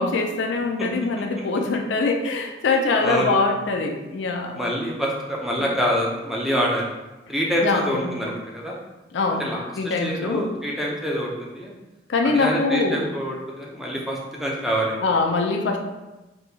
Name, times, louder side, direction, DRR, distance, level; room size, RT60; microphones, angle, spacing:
voice 1, 0.0-4.6 7.6-8.0 9.1-9.4 9.8-10.4 12.1-13.1 15.0-15.8, left 3 dB, 75° left, 2 dB, 0.4 m, -23 dB
voice 2, 3.0-3.4 4.5-6.9 7.3-8.7 9.4-11.7 12.2-15.0, equal, ahead, -3 dB, 0.5 m, -26 dB
4.2 x 2.2 x 2.7 m, 1.1 s
head